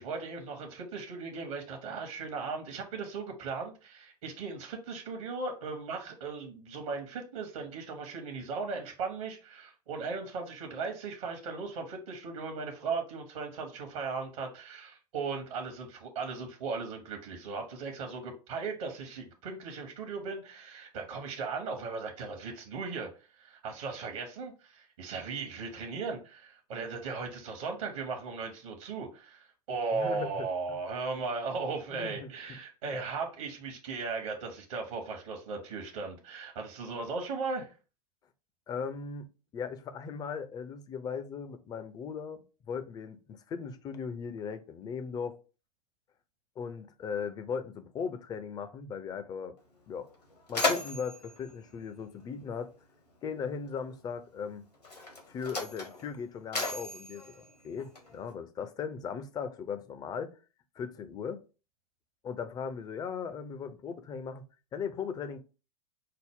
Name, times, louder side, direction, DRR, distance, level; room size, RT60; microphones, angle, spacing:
voice 1, 0.0-23.1 23.4-37.7, right 4 dB, 55° right, 1.0 m, -37 dB
voice 2, 29.9-30.5 31.9-32.3 32.8-33.0 38.7-45.4 46.6-49.5 49.9-50.1 50.5-52.7 53.2-54.6 55.3-60.3 60.8-61.4 62.2-64.4 64.7-65.4, left 6 dB, 20° left, 0.5 m, -38 dB
Mechanisms, 49.6-49.7 50.0-52.8 53.8-53.9 54.7-58.3, left 3 dB, 80° left, 1.5 m, -36 dB
5.6 x 2.0 x 3.5 m
figure-of-eight pair, 90°, 20 cm